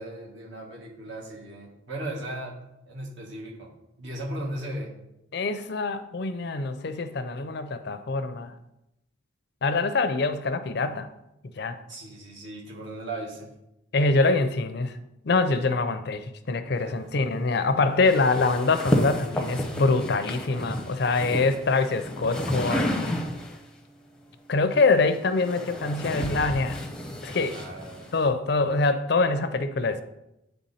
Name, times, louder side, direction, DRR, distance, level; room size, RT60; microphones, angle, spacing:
voice 1, 0.0-2.6 2.9-3.7 4.0-4.9 11.9-13.5 16.8-17.3 27.5-28.2, right 1 dB, 65° right, -2 dB, 1.8 m, -37 dB
voice 2, 5.3-8.5 9.6-11.1 11.6-11.8 13.9-15.0 15.2-23.2 24.5-26.8 27.2-27.6 28.1-30.0, left 3 dB, 55° left, 10 dB, 0.5 m, -24 dB
sound 1, 18.0-23.7 24.7-28.3, left 1 dB, 5° left, 0.7 m, -31 dB
9.6 x 3.4 x 4.2 m, 0.87 s
head